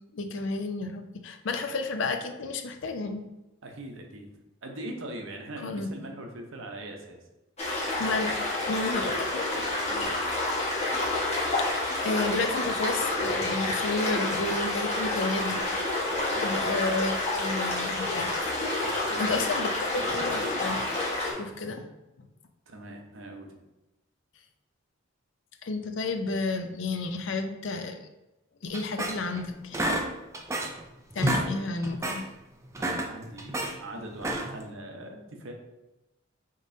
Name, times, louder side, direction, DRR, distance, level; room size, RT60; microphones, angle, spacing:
voice 1, 0.1-3.2 5.6-5.9 8.0-8.4 8.7-9.8 11.6-11.7 12.0-15.7 16.4-18.3 19.2-20.8 21.3-21.9 25.6-28.1 28.6-29.8 31.1-32.3, left 3 dB, 65° left, 6 dB, 0.5 m, -31 dB
voice 2, 3.6-4.3 4.6-7.2 9.9-10.2 16.1-16.4 18.8-19.5 19.9-20.3 22.7-23.5 31.6-31.7 32.8-35.5, right 1 dB, 70° right, 2 dB, 0.8 m, -41 dB
sound 1, 7.6-21.3, left 2 dB, 30° left, 1.2 m, -29 dB
sound 2, 28.7-29.4 29.7-30.8 31.1-31.5 31.8-32.2 32.6-33.7 34.2-34.7, right 1 dB, 15° right, 0.3 m, -29 dB
5.2 x 3.7 x 2.7 m, 0.98 s
head